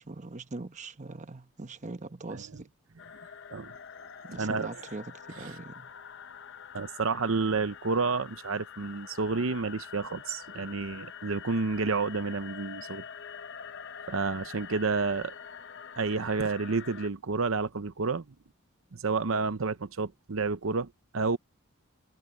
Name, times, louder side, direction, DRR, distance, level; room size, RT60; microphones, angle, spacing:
voice 1, 0.0-2.7 4.2-5.9, right 2 dB, 35° right, 1.0 m, -41 dB
sound 1, 3.0-17.1, left 7 dB, 55° left, 0.7 m, -46 dB
voice 2, 4.3-4.7 5.4-5.6 6.7-13.0 14.1-15.3 16.0-18.2 18.9-21.4, right 4 dB, 70° right, 0.8 m, -30 dB
head